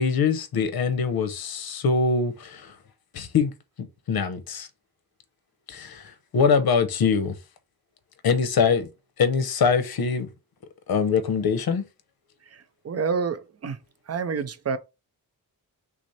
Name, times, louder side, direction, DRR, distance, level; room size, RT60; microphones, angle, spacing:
voice 1, 0.0-2.7 3.1-3.5 4.1-4.7 5.7-7.3 8.2-8.9 9.2-10.3 10.9-11.9, left 5 dB, 80° left, 0.9 m, -23 dB
voice 2, 12.5-13.8 14.1-14.8, right 5 dB, 45° right, 0.5 m, -28 dB
6.0 x 2.0 x 4.1 m
wide cardioid pair, 145°, 36 cm